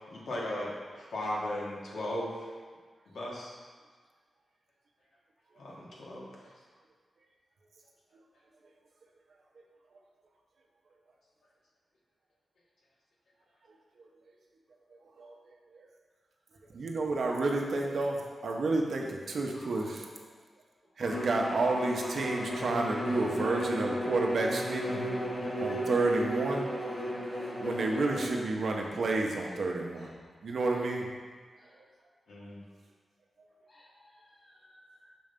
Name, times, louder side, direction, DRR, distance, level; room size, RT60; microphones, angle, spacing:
voice 1, 0.1-2.5 3.1-3.5 5.6-6.5 32.3-32.6, left 1 dB, 85° left, -4 dB, 1.3 m, -37 dB
voice 2, 14.9-15.4 15.7-15.9 16.7-20.1 21.0-24.9 25.5-26.7 27.6-30.1 30.4-31.1, right 3 dB, 60° right, 0 dB, 0.7 m, -30 dB
voice 3, 19.5-20.1 21.5-21.7 22.6-22.8 23.1-23.2 28.7-29.1 29.4-29.5 29.9-30.1 30.7-30.8 31.6-31.8 33.7-35.1, left 1 dB, 45° left, -7 dB, 1.1 m, -56 dB
Bowed string instrument, 21.0-28.4, equal, 30° left, 0.9 m, -34 dB
6.1 x 3.3 x 5.1 m, 1.5 s
wide cardioid pair, 160°, 0 cm